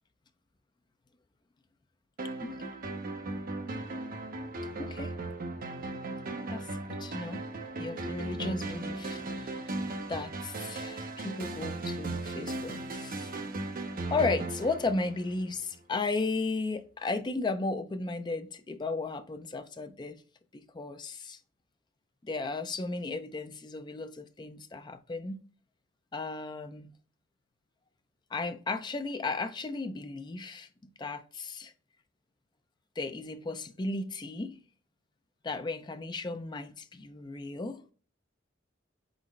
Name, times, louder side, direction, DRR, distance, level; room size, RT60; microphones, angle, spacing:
sound 1, 2.2-15.7, right 2 dB, 50° right, 0.6 m, -37 dB
voice 1, 4.8-5.1 6.5-7.4 7.8-13.3 14.1-20.2 20.5-21.4 22.2-25.4 26.1-26.9 28.3-30.7 31.0-31.7 33.0-34.6 35.4-37.8, left 3 dB, 25° left, 0.4 m, -35 dB
4.1 x 3.9 x 3.1 m
head